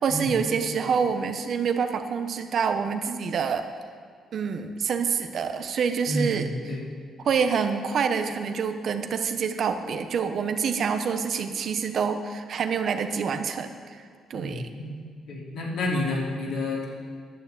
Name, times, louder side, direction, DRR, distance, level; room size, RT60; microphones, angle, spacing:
voice 1, 0.0-3.7 4.3-6.5 7.2-14.0 14.3-14.7, right 6 dB, 60° right, 8 dB, 0.9 m, -27 dB
voice 2, 6.1-6.9 14.3-15.0 15.3-16.9, left 1 dB, 75° left, -3 dB, 3.2 m, -30 dB
11.0 x 6.6 x 8.5 m, 2.1 s
cardioid pair, 90°, 0 cm